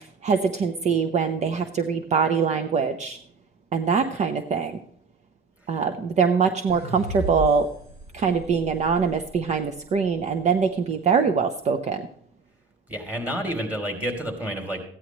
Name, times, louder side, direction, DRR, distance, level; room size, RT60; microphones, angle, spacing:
voice 1, 0.0-3.2 3.7-4.8 5.7-7.7 8.1-12.0, right 5 dB, 45° right, 8 dB, 0.8 m, -23 dB
sound 1, 6.7-9.9, right 1 dB, 85° right, 5.2 m, -36 dB
voice 2, 12.9-14.8, equal, 10° right, 2 dB, 3.2 m, -29 dB
15.0 x 9.9 x 3.1 m, 0.62 s
cardioid pair, 110°, 17 cm